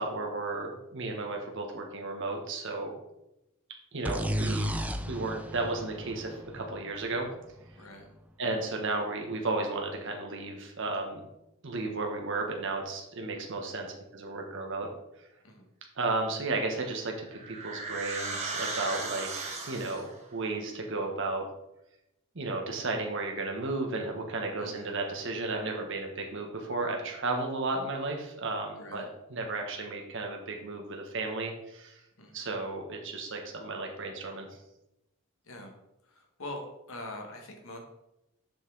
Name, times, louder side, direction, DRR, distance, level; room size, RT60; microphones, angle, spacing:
voice 1, 0.0-2.9 3.9-4.7 5.1-7.3 8.4-11.2 11.6-14.9 15.2-15.3 16.0-21.4 22.3-32.0 32.3-34.5, right 3 dB, 55° right, 2 dB, 1.0 m, -34 dB
sound 1, 4.0-7.7, equal, 5° right, 0.3 m, -34 dB
voice 2, 7.7-8.1 15.4-15.7 24.6-25.0 28.8-29.0 32.2-32.4 35.4-35.7 36.0-36.6 36.9-37.8, left 1 dB, 65° left, 2 dB, 1.5 m, -43 dB
sound 2, 16.8-20.2, right 3 dB, 30° right, 1.2 m, -36 dB
7.0 x 5.5 x 3.8 m, 0.88 s
head